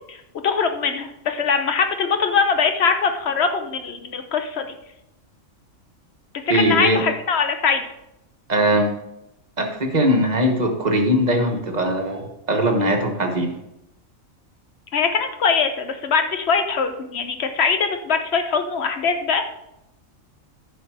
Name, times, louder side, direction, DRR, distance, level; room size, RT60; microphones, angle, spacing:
voice 1, 0.1-4.7 6.3-7.9 14.9-19.5, left 5 dB, 55° left, 7 dB, 1.0 m, -22 dB
voice 2, 6.5-7.0 8.5-8.9 9.6-13.5, right 1 dB, 35° right, 3 dB, 1.3 m, -20 dB
9.9 x 5.8 x 4.7 m, 0.84 s
omnidirectional pair, 1.4 m